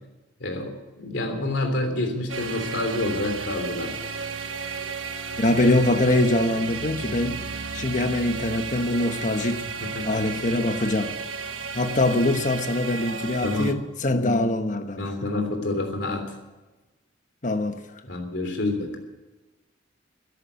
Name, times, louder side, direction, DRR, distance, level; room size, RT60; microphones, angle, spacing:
voice 1, 0.4-4.0 9.9-10.2 13.4-13.7 15.0-16.3 18.1-19.0, left 2 dB, 65° left, 3.3 m, -28 dB
sound 1, 2.3-13.7, right 4 dB, 80° right, 1.2 m, -33 dB
voice 2, 5.4-7.4 7.7-9.6 10.0-11.2 11.7-15.1 17.4-17.8, left 1 dB, 40° left, 1.1 m, -23 dB
13.5 x 11.0 x 9.7 m
head